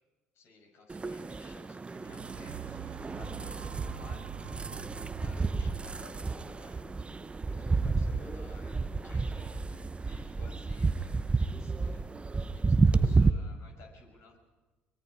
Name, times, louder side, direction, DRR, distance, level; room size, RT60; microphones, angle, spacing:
voice 1, 0.3-6.9 7.2-12.1 12.5-14.4, left 3 dB, 55° left, 3 dB, 6.3 m, -56 dB
sound 1, 0.9-13.3, right 4 dB, 20° right, 0.9 m, -31 dB
sound 2, 1.7-9.7 10.3-10.4, right 15 dB, 65° right, 0.6 m, -47 dB
sound 3, 3.2-7.4, right 1 dB, 20° left, 3.7 m, -52 dB
24.0 x 23.5 x 5.0 m, 1.2 s
hypercardioid pair, 60°, 5 cm